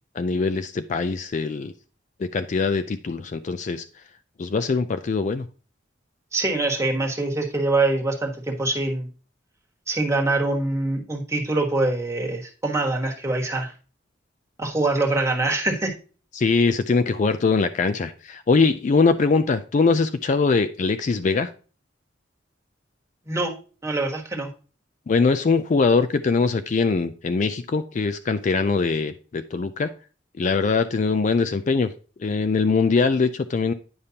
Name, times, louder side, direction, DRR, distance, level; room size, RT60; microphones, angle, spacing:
voice 1, 0.2-1.7 2.2-3.8 4.4-5.5 16.3-21.5 25.1-29.9 30.4-31.9 32.2-33.7, left 4 dB, 40° left, 10 dB, 0.4 m, -22 dB
voice 2, 6.3-9.1 9.9-13.7 14.6-15.9 23.3-23.5 23.8-24.5, right 2 dB, 15° right, 0 dB, 1.4 m, -24 dB
9.6 x 5.2 x 2.8 m, 0.36 s
head